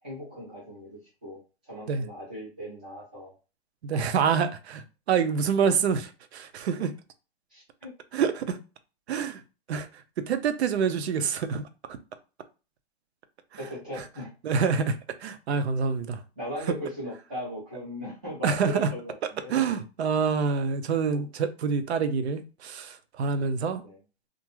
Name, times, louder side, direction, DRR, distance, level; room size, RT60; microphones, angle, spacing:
voice 1, 0.0-1.4 1.7-3.3 3.9-4.0 7.5-7.9 13.6-14.3 15.7-15.8 16.4-19.5 21.1-21.2 23.8-24.0, equal, 10° right, 0.3 m, -38 dB
voice 2, 3.8-4.8 5.1-6.9 8.1-8.6 9.1-9.4 9.7-9.9 10.2-11.6 14.0-14.1 14.4-16.2 18.4-18.9 19.5-23.8, right 6 dB, 80° right, 0.6 m, -26 dB
2.4 x 2.2 x 3.0 m
hypercardioid pair, 165°, 32 cm